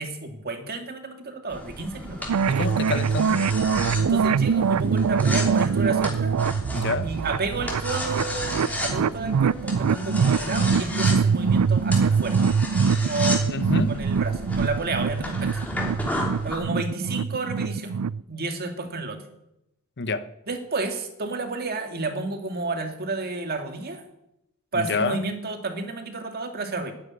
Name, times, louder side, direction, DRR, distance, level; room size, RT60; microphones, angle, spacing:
voice 1, 0.0-2.3 4.0-6.3 7.0-12.4 13.0-15.6 16.4-18.0 18.3-19.2 20.5-24.0 24.7-26.9, right 3 dB, 45° right, 6 dB, 2.1 m, -31 dB
sound 1, 1.5-16.6, left 1 dB, 5° left, 3.2 m, -34 dB
sound 2, 2.3-18.2, right 6 dB, 80° right, 0.4 m, -23 dB
voice 2, 2.5-3.4 6.7-7.1 13.5-13.9 20.0-20.2 24.7-25.2, left 3 dB, 50° left, 12 dB, 1.0 m, -27 dB
11.5 x 10.0 x 9.7 m, 0.86 s
head